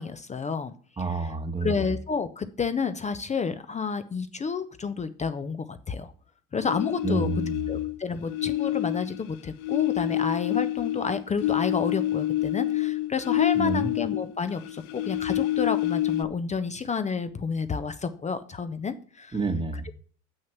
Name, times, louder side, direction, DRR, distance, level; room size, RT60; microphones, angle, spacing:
voice 1, 0.0-1.3 1.6-6.1 6.5-7.3 7.7-19.4 19.8-19.9, left 5 dB, 20° left, 11 dB, 0.6 m, -30 dB
voice 2, 1.0-1.8 7.0-7.7 13.5-13.9 19.3-19.8, right 3 dB, 15° right, 8 dB, 1.2 m, -29 dB
sound 1, 6.6-7.9 8.3-14.4 14.6-16.2, left 14 dB, 65° left, 0.8 m, -27 dB
7.6 x 6.4 x 5.9 m, 0.43 s
supercardioid pair, 115°, 37 cm